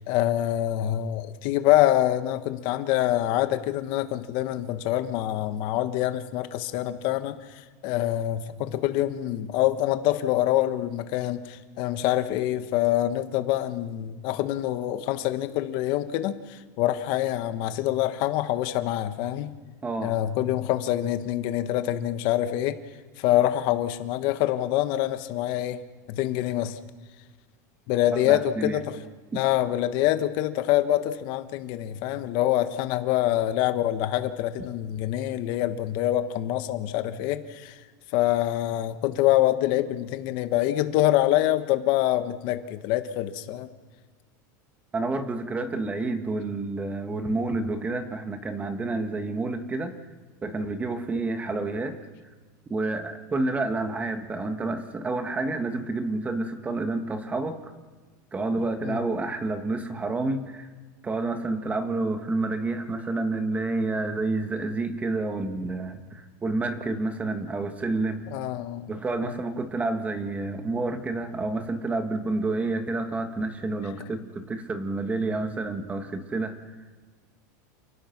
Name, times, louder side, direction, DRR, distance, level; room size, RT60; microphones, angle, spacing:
voice 1, 0.0-19.5 20.0-22.8 23.2-25.8 26.1-26.8 27.9-29.0 29.3-37.8 38.1-43.7 58.8-59.0 68.3-68.9 69.2-69.3, left 13 dB, 50° left, 9 dB, 1.4 m, -25 dB
voice 2, 19.8-20.2 28.1-28.8 29.3-29.4 44.9-49.9 50.4-52.0 52.7-57.7 58.3-60.7 61.0-68.3 68.9-76.5, right 2 dB, 15° right, 7 dB, 1.8 m, -29 dB
29.0 x 18.0 x 6.1 m, 1.4 s
supercardioid pair, 150°, 10 cm